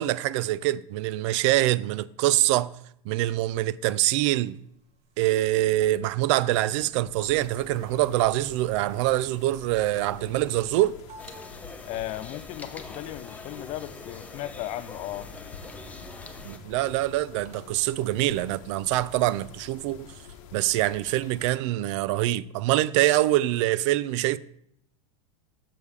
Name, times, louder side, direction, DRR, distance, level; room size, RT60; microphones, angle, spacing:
voice 1, 0.0-2.7 3.1-4.6 5.2-11.0 16.4-20.1 20.5-24.4, right 15 dB, 55° right, 0.4 m, -24 dB
sound 1, 3.9-17.7, right 3 dB, 40° right, 1.2 m, -54 dB
Mechanisms, 7.2-21.5, left 8 dB, 65° left, 0.9 m, -47 dB
sound 2, 11.2-16.6, left 3 dB, 10° left, 0.7 m, -44 dB
voice 2, 11.9-15.3, left 14 dB, 35° left, 0.4 m, -36 dB
6.9 x 5.3 x 4.7 m
supercardioid pair, 135°, 18 cm